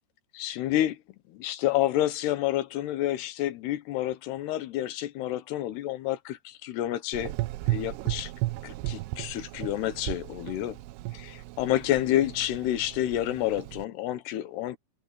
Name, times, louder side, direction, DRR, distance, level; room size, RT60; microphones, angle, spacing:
voice 1, 0.3-1.0 1.3-7.3 7.7-8.3 8.6-10.8 11.1-14.8, left 13 dB, 80° left, 3.2 m, -29 dB
Gurgling / Engine, 7.1-13.9, right 19 dB, 85° right, 2.8 m, -35 dB
omnidirectional pair, 4.7 m